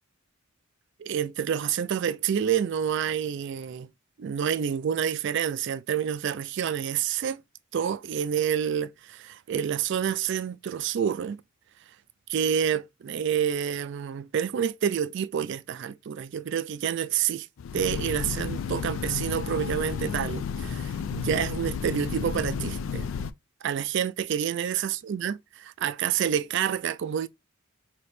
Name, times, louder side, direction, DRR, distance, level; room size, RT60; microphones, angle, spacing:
voice 1, 1.0-3.9 4.2-7.4 7.7-11.4 12.3-17.5 17.7-23.1 23.6-27.3, right 8 dB, 55° right, 0.3 m, -28 dB
Train, 17.6-23.3, left 6 dB, 70° left, 0.4 m, -32 dB
4.2 x 2.9 x 3.2 m
head